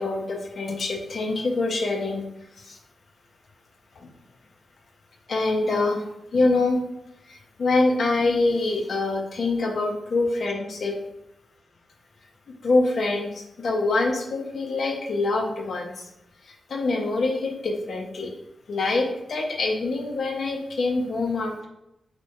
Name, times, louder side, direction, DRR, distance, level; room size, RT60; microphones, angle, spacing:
voice 1, 0.0-2.2 2.6-2.8 4.0-4.1 5.3-6.0 6.3-6.8 7.3-11.0 12.5-16.1 16.4-18.3 18.7-21.7, left 3 dB, 65° left, 1 dB, 0.4 m, -25 dB
2.1 x 2.1 x 2.8 m, 0.86 s
cardioid pair, 50°, 0 cm